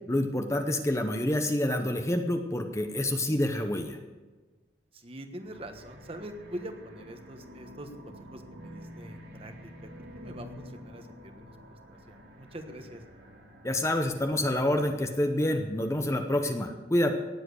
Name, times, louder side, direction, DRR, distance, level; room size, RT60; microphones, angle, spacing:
voice 1, 0.1-4.0 13.6-17.2, left 1 dB, 15° left, 5 dB, 0.8 m, -27 dB
voice 2, 4.9-11.6 11.9-13.0, right 1 dB, 30° right, 6 dB, 1.3 m, -44 dB
sound 1, 5.4-16.0, equal, 90° right, 4.1 m, -49 dB
18.0 x 7.6 x 6.5 m, 1.3 s
head